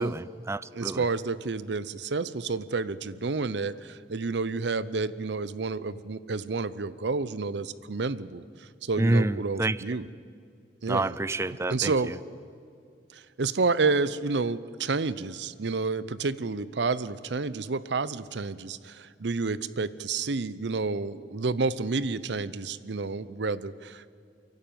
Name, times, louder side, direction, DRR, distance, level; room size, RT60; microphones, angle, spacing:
voice 1, 0.0-1.0 9.0-9.8 10.9-11.9, right 2 dB, 15° right, 18 dB, 0.4 m, -27 dB
voice 2, 0.7-8.4 8.8-10.1 10.8-11.1 11.7-12.1 13.1-24.1, right 4 dB, 75° right, 17 dB, 0.7 m, -30 dB
28.5 x 11.5 x 9.2 m, 2.3 s
head